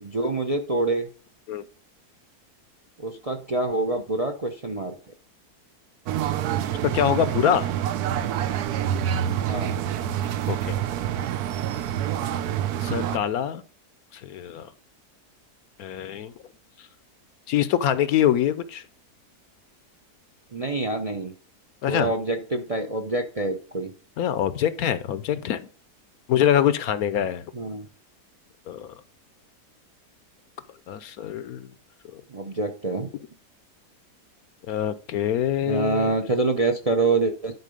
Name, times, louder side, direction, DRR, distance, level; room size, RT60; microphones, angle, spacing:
voice 1, 0.0-1.1 3.0-4.9 9.5-9.7 20.5-21.3 21.9-23.9 27.5-27.9 32.3-33.1 35.6-37.5, right 3 dB, 35° right, 0.6 m, -26 dB
sound 1, 6.1-13.2, right 10 dB, 75° right, 1.2 m, -27 dB
voice 2, 6.8-7.7 10.5-10.8 12.8-13.6 14.1-14.7 15.8-16.3 17.5-18.8 21.8-22.1 24.2-25.7 26.3-27.5 28.7-28.9 30.9-31.7 32.0-32.2 34.7-36.2, left 10 dB, 70° left, 1.1 m, -24 dB
11.0 x 4.6 x 5.2 m
omnidirectional pair, 1.7 m